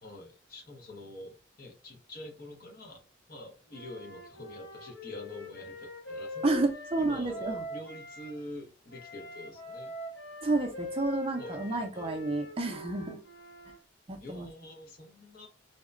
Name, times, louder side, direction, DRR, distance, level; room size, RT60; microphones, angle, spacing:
voice 1, 0.0-3.0 3.3-6.7 7.0-9.9 11.4-12.1 14.2-15.5, left 1 dB, 50° left, 0.7 m, -46 dB
Wind instrument woodwind instrument, 3.7-8.3 8.9-13.8, left 2 dB, 85° left, 0.8 m, -42 dB
voice 2, 6.4-7.6 10.4-13.2 14.1-14.5, right 2 dB, 30° right, 0.4 m, -30 dB
2.8 x 2.1 x 2.4 m
head